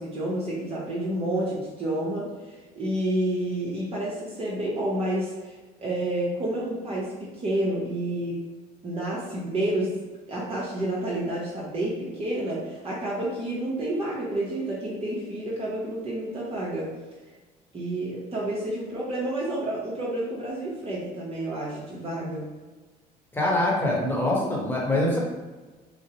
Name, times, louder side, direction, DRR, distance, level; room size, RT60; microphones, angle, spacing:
voice 1, 0.0-8.4 8.8-10.0 10.3-16.9 17.7-22.5, right 1 dB, 35° right, -6 dB, 1.3 m, -29 dB
voice 2, 23.3-25.2, left 1 dB, 10° left, -3 dB, 1.4 m, -24 dB
6.3 x 2.4 x 3.0 m, 1.3 s
cardioid pair, 110°, 17 cm